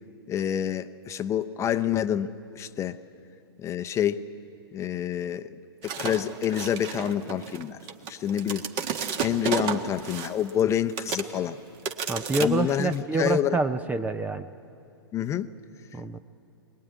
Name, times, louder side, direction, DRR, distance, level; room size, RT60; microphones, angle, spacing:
voice 1, 0.3-3.0 3.6-4.2 4.7-5.5 5.8-7.8 8.1-8.7 9.2-11.6 12.4-13.6 15.1-15.5, left 10 dB, 20° left, 10 dB, 0.7 m, -27 dB
sound 1, 5.8-10.6 11.0-11.4 11.8-12.9, right 7 dB, 40° right, 1.7 m, -32 dB
voice 2, 12.1-14.5 15.9-16.2, right 3 dB, 10° right, 12 dB, 0.5 m, -27 dB
22.5 x 21.0 x 9.4 m, 2.7 s
hypercardioid pair, 115°, 13 cm